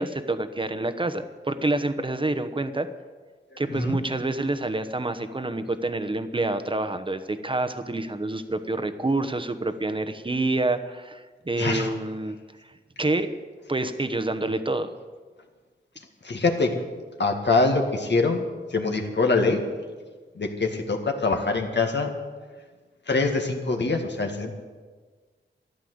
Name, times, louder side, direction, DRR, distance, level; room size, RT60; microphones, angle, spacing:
voice 1, 0.0-2.9 3.6-12.4 13.0-13.3 13.7-14.9, right 2 dB, 25° right, 10 dB, 1.0 m, -27 dB
voice 2, 11.6-11.9 16.2-16.7 17.2-18.4 18.7-19.6 20.4-22.1 23.1-24.5, left 3 dB, 65° left, 4 dB, 1.9 m, -24 dB
13.5 x 11.0 x 7.9 m, 1.5 s
wide cardioid pair, 75°, 20 cm